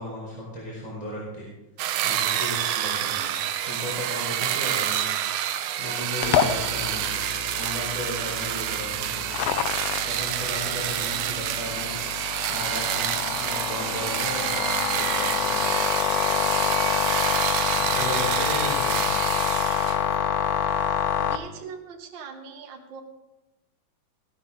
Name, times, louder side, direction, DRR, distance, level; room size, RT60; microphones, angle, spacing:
voice 1, 0.0-1.5 2.0-3.4 3.7-5.1 5.8-7.2 7.5-9.5 10.0-12.0 12.5-15.7 17.7-19.1, equal, 10° right, -5 dB, 3.8 m, -35 dB
sound 1, 1.8-20.0, right 11 dB, 80° right, 2.2 m, -28 dB
voice 2, 3.0-3.4 11.0-11.5 21.2-23.0, right 5 dB, 50° right, 3 dB, 1.6 m, -42 dB
sound 2, 6.2-21.4, left 9 dB, 80° left, 1.4 m, -27 dB
15.5 x 12.5 x 3.7 m, 0.96 s
omnidirectional pair, 3.6 m